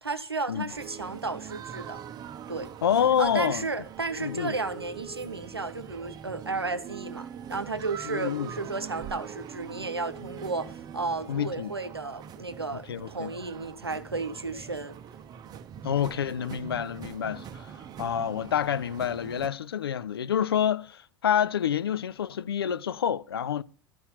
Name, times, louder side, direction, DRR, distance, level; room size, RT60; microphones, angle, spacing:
voice 1, 0.0-2.0 2.5-2.7 3.2-15.0, right 3 dB, 90° right, 0.8 m, -33 dB
sound 1, 0.7-19.5, right 8 dB, 30° right, 0.7 m, -43 dB
voice 2, 2.8-3.7 4.2-4.5 8.0-8.5 11.3-11.7 12.9-13.3 15.8-17.7 18.0-23.6, left 9 dB, 75° left, 0.4 m, -28 dB
12.5 x 5.6 x 5.7 m
figure-of-eight pair, 80°, 13 cm